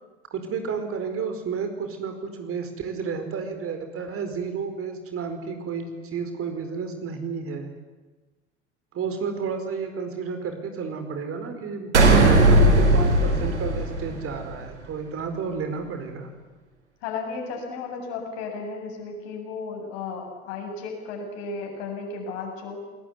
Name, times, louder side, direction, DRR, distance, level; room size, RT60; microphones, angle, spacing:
voice 1, 0.3-7.7 8.9-16.3, right 5 dB, 40° right, 7 dB, 4.8 m, -31 dB
sound 1, 11.9-14.5, right 1 dB, 85° right, 3.9 m, -17 dB
voice 2, 17.0-22.8, left 4 dB, 65° left, 2 dB, 7.9 m, -34 dB
27.5 x 20.5 x 9.6 m, 1.2 s
figure-of-eight pair, 70°, 34 cm